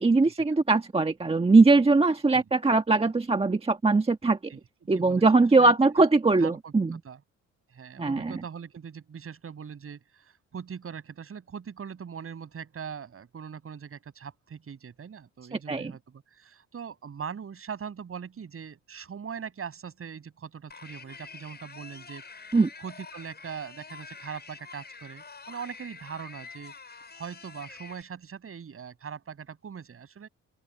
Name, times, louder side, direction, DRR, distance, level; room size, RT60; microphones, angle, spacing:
voice 1, 0.0-4.5 4.9-7.0 8.0-8.3 15.7-15.9 22.5-22.7, right 3 dB, 20° right, 1.5 m, -21 dB
voice 2, 4.5-5.2 5.6-6.0 6.4-6.7 7.0-7.2 7.7-22.2 22.5-26.7 27.1-30.3, right 7 dB, 45° right, 7.1 m, -41 dB
sound 1, 20.7-28.0, left 5 dB, 35° left, 7.5 m, -46 dB
open air
cardioid pair, 90°, 30 cm